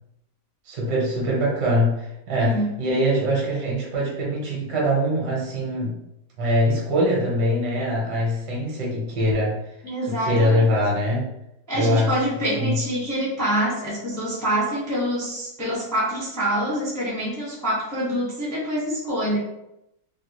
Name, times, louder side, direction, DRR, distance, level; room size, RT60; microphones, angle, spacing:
voice 1, 0.7-6.0 6.4-9.6 10.1-11.3 11.7-12.2 12.6-12.8, equal, 60° right, -4 dB, 1.3 m, -23 dB
voice 2, 2.4-2.7 9.8-10.7 11.7-19.4, right 1 dB, 5° left, -7 dB, 0.4 m, -26 dB
3.4 x 2.3 x 2.8 m, 0.86 s
omnidirectional pair, 2.2 m